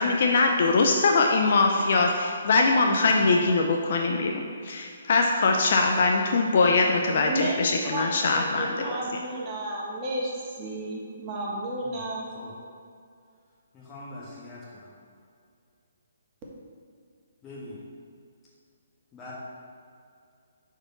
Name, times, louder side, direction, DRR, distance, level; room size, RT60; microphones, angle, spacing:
voice 1, 0.0-8.7, left 3 dB, 55° left, 2 dB, 0.5 m, -22 dB
voice 2, 7.2-12.3, right 1 dB, 25° right, -3 dB, 1.4 m, -32 dB
voice 3, 13.7-14.9 17.4-17.8 19.1-19.3, left 2 dB, 15° left, -7 dB, 1.3 m, -43 dB
4.9 x 4.5 x 5.9 m, 2.3 s
hypercardioid pair, 145°, 0 cm